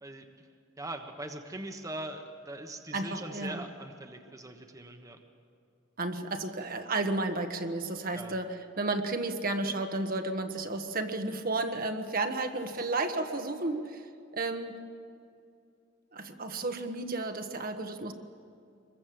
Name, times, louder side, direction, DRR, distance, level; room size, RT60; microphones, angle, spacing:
voice 1, 0.0-0.5 0.8-5.2 8.1-8.3 12.7-12.9, right 1 dB, 20° right, 5 dB, 1.3 m, -41 dB
voice 2, 2.9-3.6 6.0-14.1 14.3-14.8 16.1-18.1, right 2 dB, 50° right, 6 dB, 1.4 m, -32 dB
25.5 x 21.5 x 7.8 m, 2.5 s
head